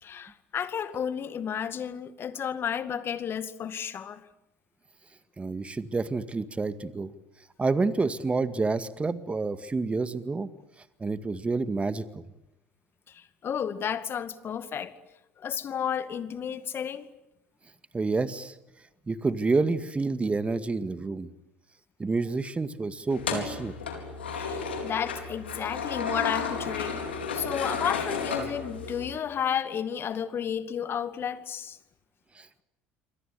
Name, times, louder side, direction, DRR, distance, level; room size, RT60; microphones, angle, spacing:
voice 1, 0.0-4.2 13.1-14.9 15.4-17.1 24.4-27.0 27.3-31.8, left 8 dB, 45° left, 2.2 m, -32 dB
voice 2, 5.4-7.1 7.6-10.5 11.0-12.2 17.9-18.5 19.1-21.3 22.0-23.7 32.4-32.6, right 3 dB, 20° right, 2.0 m, -28 dB
sound 1, 23.1-29.1, left 5 dB, 90° left, 4.3 m, -33 dB
28.0 x 24.5 x 8.4 m
hypercardioid pair, 65°, 6 cm